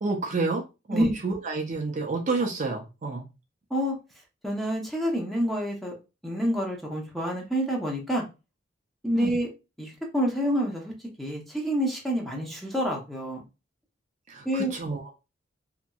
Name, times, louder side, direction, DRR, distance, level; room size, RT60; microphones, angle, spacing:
voice 1, 0.0-3.3 9.2-9.3 14.3-15.1, right 3 dB, 40° right, 2 dB, 0.4 m, -30 dB
voice 2, 4.4-5.9 6.2-8.2 9.0-9.5 9.8-10.9 11.2-13.4 14.4-14.7, equal, ahead, -1 dB, 0.7 m, -27 dB
2.8 x 2.6 x 2.2 m, 0.27 s
head